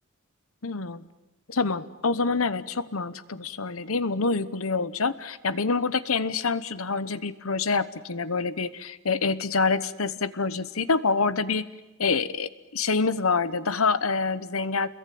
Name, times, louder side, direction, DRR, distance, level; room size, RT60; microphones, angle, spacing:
voice 1, 0.6-1.0 1.5-11.6 12.0-14.9, left 4 dB, 75° left, 14 dB, 1.1 m, -26 dB
29.0 x 22.0 x 9.4 m, 1.1 s
head